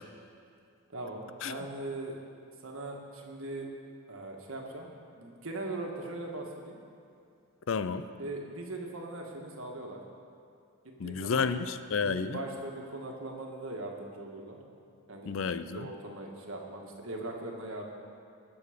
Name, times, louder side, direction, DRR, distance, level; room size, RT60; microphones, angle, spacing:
voice 1, 0.9-2.2 2.6-3.7 4.1-4.9 5.2-6.8 8.2-10.0 10.8-11.6 12.0-14.6 15.1-15.3 15.6-17.8, right 2 dB, 65° right, 0 dB, 1.7 m, -40 dB
voice 2, 7.7-8.0 11.0-12.4 15.3-15.9, left 5 dB, 60° left, 12 dB, 0.5 m, -31 dB
19.0 x 7.0 x 5.1 m, 2.5 s
head